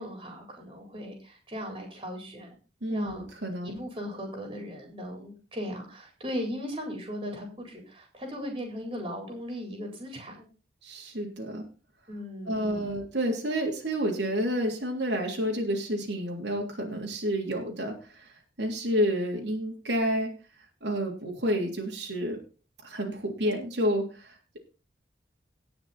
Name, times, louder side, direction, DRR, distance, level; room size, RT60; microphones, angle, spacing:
voice 1, 0.0-2.5 2.9-3.2 3.6-10.5 12.1-13.0, equal, 30° right, 2 dB, 4.2 m, -37 dB
voice 2, 2.8-3.8 10.8-11.6 12.5-17.9 18.6-20.3 20.8-22.4 22.8-24.6, equal, 85° right, 0 dB, 3.2 m, -29 dB
18.0 x 6.1 x 4.3 m, 0.34 s
head